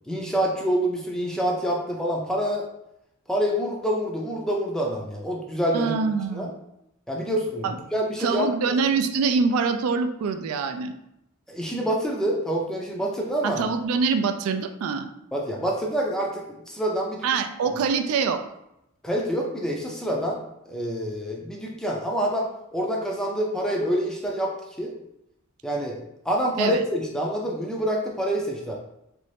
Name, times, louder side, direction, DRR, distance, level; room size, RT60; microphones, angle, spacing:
voice 1, 0.1-2.7 3.3-6.5 7.1-8.8 11.5-13.6 15.3-17.3 19.0-20.4 20.7-24.9 25.6-26.0 26.3-28.8, equal, 5° left, -2 dB, 0.4 m, -27 dB
voice 2, 5.7-6.6 7.6-7.8 8.2-10.9 13.4-15.1 17.2-18.4 26.6-26.8, right 5 dB, 80° right, 8 dB, 0.3 m, -24 dB
3.0 x 2.6 x 3.2 m, 0.83 s
head